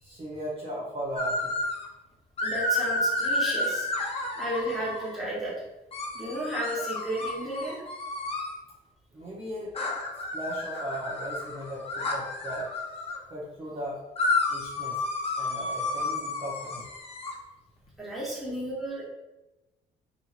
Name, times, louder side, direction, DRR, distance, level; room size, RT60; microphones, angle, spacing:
voice 1, 0.0-1.5 9.1-9.7 10.3-12.7 13.3-14.0 14.5-16.9 18.4-18.5, right 1 dB, 30° right, -6 dB, 0.8 m, -37 dB
sound 1, 1.2-1.8 2.4-5.2 5.9-8.5 9.7-13.2 14.2-17.3, left 2 dB, 35° left, 0.6 m, -31 dB
voice 2, 2.4-3.9 4.4-5.5 6.1-7.8 15.6-15.7 18.0-19.1, right 1 dB, ahead, -7 dB, 1.3 m, -33 dB
2.8 x 2.7 x 2.5 m, 0.99 s
cardioid pair, 85°, 18 cm